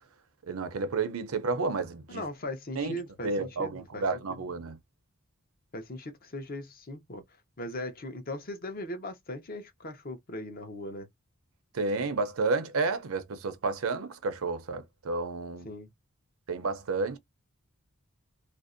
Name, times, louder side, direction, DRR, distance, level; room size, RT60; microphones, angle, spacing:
voice 1, 0.5-2.2 2.8-3.0 3.2-4.8 11.7-15.7 16.5-17.2, right 3 dB, 75° right, 0.6 m, -31 dB
voice 2, 2.1-4.4 5.7-7.2 7.6-11.1 15.6-15.9, left 1 dB, 45° left, 0.7 m, -39 dB
2.5 x 2.0 x 2.5 m
head